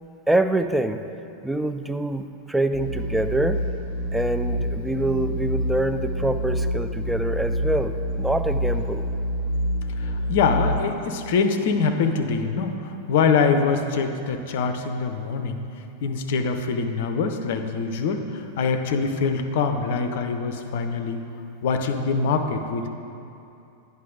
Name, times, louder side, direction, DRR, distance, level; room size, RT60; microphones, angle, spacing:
voice 1, 0.3-1.0 1.4-3.6 4.1-9.0, right 1 dB, 5° right, 8 dB, 0.3 m, -25 dB
sound 1, 2.7-10.8, equal, 55° right, 1.2 m, -27 dB
voice 2, 10.0-15.6 16.0-21.2 21.6-22.9, left 5 dB, 55° left, 6 dB, 0.5 m, -24 dB
9.2 x 5.6 x 3.8 m, 2.7 s
figure-of-eight pair, 90°, 0 cm